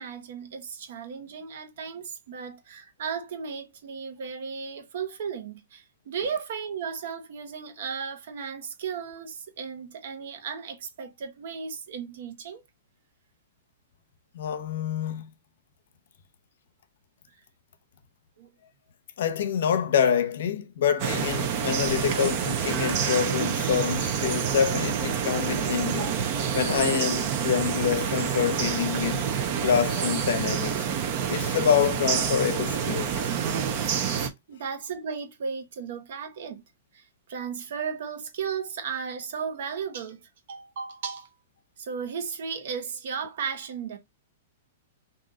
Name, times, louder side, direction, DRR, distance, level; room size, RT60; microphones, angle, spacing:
voice 1, 0.0-12.6 18.4-18.5 26.0-26.1 34.5-36.6 36.9-41.3 41.8-44.0, right 6 dB, 65° right, 1.1 m, -35 dB
voice 2, 14.3-15.3 19.2-26.1 26.5-29.3 29.6-30.9 31.3-33.3, left 8 dB, 70° left, 0.7 m, -26 dB
sound 1, 21.0-34.3, right 8 dB, 45° right, 0.8 m, -27 dB
3.9 x 2.7 x 3.6 m
hypercardioid pair, 145°, 0 cm